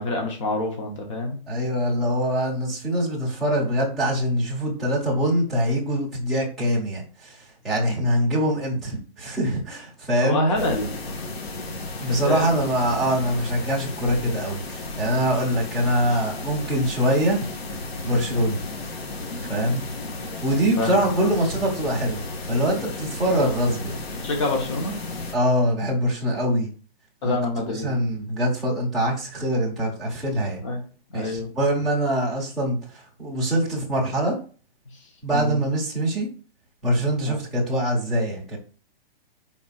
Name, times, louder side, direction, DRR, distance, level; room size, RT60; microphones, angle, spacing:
voice 1, 0.0-1.4 10.2-11.0 12.1-12.6 18.3-18.5 20.8-21.3 24.2-24.9 27.2-27.9 30.6-30.8 31.1-31.5 35.3-35.6 37.3-37.4, left 2 dB, 30° left, 2 dB, 1.3 m, -26 dB
voice 2, 1.5-10.4 12.0-17.5 18.0-18.6 19.5-19.8 20.4-22.2 22.5-24.0 25.3-26.7 27.2-30.6 31.1-34.4 35.2-36.3 36.8-38.6, equal, ahead, -7 dB, 0.8 m, -24 dB
sound 1, 10.5-25.3, left 2 dB, 85° left, 1.9 m, -34 dB
5.3 x 4.3 x 5.8 m, 0.39 s
hypercardioid pair, 180°, 30 cm